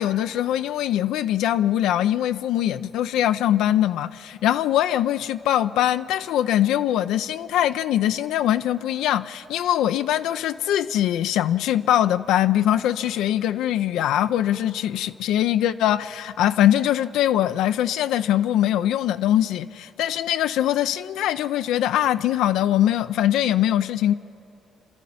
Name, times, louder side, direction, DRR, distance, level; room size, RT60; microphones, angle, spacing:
voice 1, 0.0-24.1, left 12 dB, 90° left, 0.5 m, -22 dB
28.5 x 12.5 x 8.6 m
cardioid pair, 90°, 0 cm